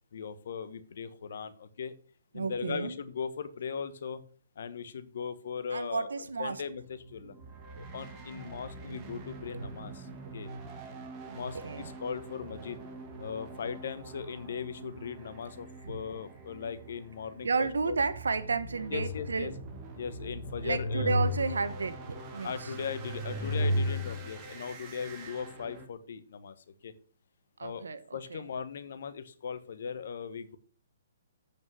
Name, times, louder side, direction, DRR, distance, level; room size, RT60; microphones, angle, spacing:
voice 1, 0.1-1.9 2.3-4.2 4.6-6.1 6.4-7.3 7.7-10.0 10.3-10.5 11.3-12.8 13.2-18.0 18.9-19.5 20.0-21.1 22.4-26.5 26.8-26.9 27.6-27.8 28.1-30.6, left 6 dB, 65° left, 1.1 m, -38 dB
voice 2, 2.3-3.0 5.7-6.6 9.5-9.6 11.3-11.9 15.8-16.0 17.4-19.5 20.6-22.7 27.6-28.5, right 4 dB, 85° right, 1.1 m, -32 dB
sound 1, 6.4-25.9, right 3 dB, 25° right, 1.9 m, -46 dB
sound 2, 18.9-19.8 20.3-21.9 22.4-24.4, left 1 dB, 15° left, 2.6 m, -33 dB
8.3 x 5.3 x 6.2 m
hypercardioid pair, 140°, 0 cm